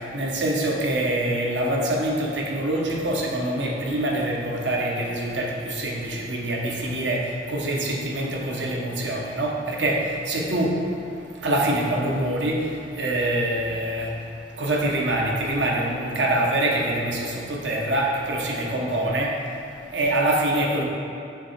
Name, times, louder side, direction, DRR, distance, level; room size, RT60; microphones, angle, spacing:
voice 1, 0.0-11.0 11.3-14.3 14.6-19.5 19.9-20.8, right 1 dB, 75° right, -1 dB, 0.9 m, -25 dB
6.8 x 3.2 x 5.7 m, 2.6 s
head